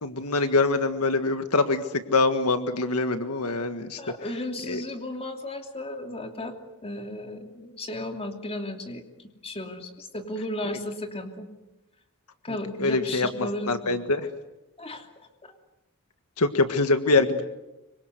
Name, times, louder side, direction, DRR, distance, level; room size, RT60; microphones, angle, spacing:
voice 1, 0.0-1.8 2.1-4.0 4.7-4.8 12.8-13.3 13.7-14.2 16.4-17.5, left 3 dB, 80° left, 8 dB, 1.7 m, -24 dB
voice 2, 4.0-6.6 6.8-9.0 9.4-11.5 12.4-14.0 14.8-15.1 15.4-15.5, left 1 dB, 25° left, 4 dB, 2.8 m, -34 dB
26.0 x 24.5 x 8.1 m, 0.99 s
head